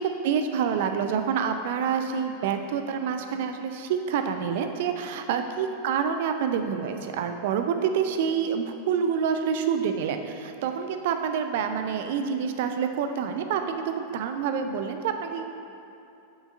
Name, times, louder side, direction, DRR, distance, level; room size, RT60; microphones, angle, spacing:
voice 1, 0.0-15.4, right 7 dB, 50° right, 7 dB, 0.4 m, -27 dB
6.2 x 6.1 x 2.6 m, 2.7 s
figure-of-eight pair, 90°, 0 cm